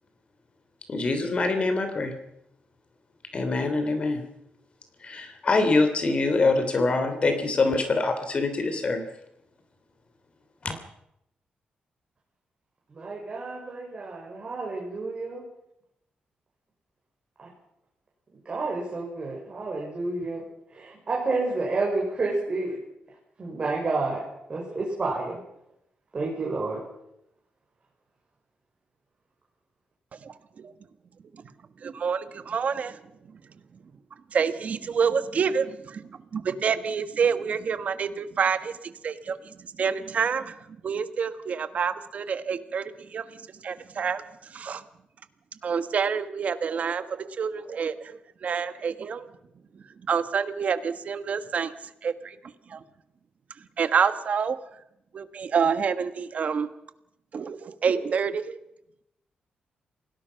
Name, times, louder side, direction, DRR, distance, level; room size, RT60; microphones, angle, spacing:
voice 1, 0.9-2.1 3.3-4.2 5.0-9.0 10.6-10.7, left 3 dB, 40° left, 8 dB, 3.2 m, -24 dB
voice 2, 12.9-15.4 17.4-17.5 18.3-20.4 20.7-22.8 23.4-24.2 24.5-25.4 26.1-26.8, right 3 dB, 35° right, -3 dB, 6.2 m, -30 dB
voice 3, 31.8-32.9 34.3-35.8 36.3-38.7 39.0-39.3 39.8-40.5 40.8-43.2 43.6-44.2 44.5-44.8 45.6-47.9 48.4-49.2 50.1-51.7 52.0-52.3 52.7-52.8 53.8-54.6 55.1-56.7 57.3-58.6, right 6 dB, 50° right, 11 dB, 1.5 m, -27 dB
27.5 x 18.5 x 5.9 m, 0.81 s
wide cardioid pair, 145°, 3 cm